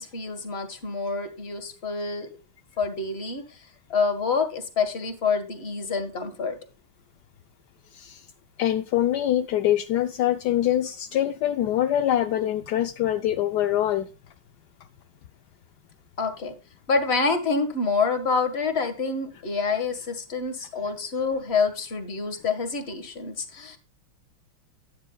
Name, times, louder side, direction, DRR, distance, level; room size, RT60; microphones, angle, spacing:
voice 1, 0.0-2.3 2.8-3.4 3.9-6.6 16.2-16.5 16.9-23.8, left 4 dB, 30° left, 9 dB, 1.6 m, -27 dB
voice 2, 7.9-8.3 8.6-14.1, left 12 dB, 75° left, 9 dB, 0.9 m, -24 dB
12.5 x 9.7 x 2.3 m, 0.32 s
omnidirectional pair, 2.4 m